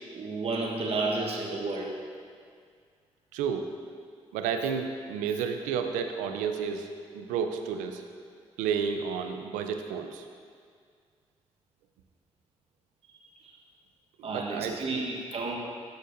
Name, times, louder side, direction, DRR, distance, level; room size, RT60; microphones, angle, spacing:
voice 1, 0.1-1.9 13.4-13.5 14.2-15.6, right 3 dB, 50° right, -2 dB, 1.2 m, -31 dB
voice 2, 3.3-3.7 4.3-8.0 8.6-10.2 14.2-15.1, right 6 dB, 90° right, 6 dB, 0.5 m, -31 dB
12.5 x 6.4 x 2.6 m, 2.1 s
supercardioid pair, 50°, 13 cm